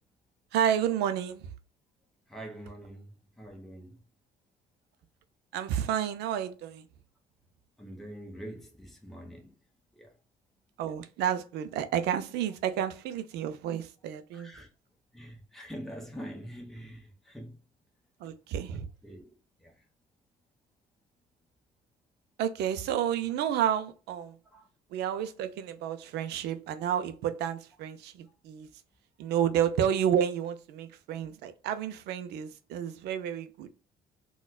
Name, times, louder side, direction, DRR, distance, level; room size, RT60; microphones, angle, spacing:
voice 1, 0.5-1.5 5.5-6.8 10.8-14.5 18.2-18.9 22.4-24.4 24.9-28.7 29.2-33.7, right 9 dB, 80° right, 0.5 m, -30 dB
voice 2, 2.3-3.1 3.4-4.0 7.8-9.5 9.9-10.1 14.3-14.7 15.1-17.6 19.0-19.3 19.6-19.7 24.5-24.7, equal, ahead, 0.9 m, -44 dB
4.1 x 2.3 x 2.3 m
cardioid pair, 110°, 17 cm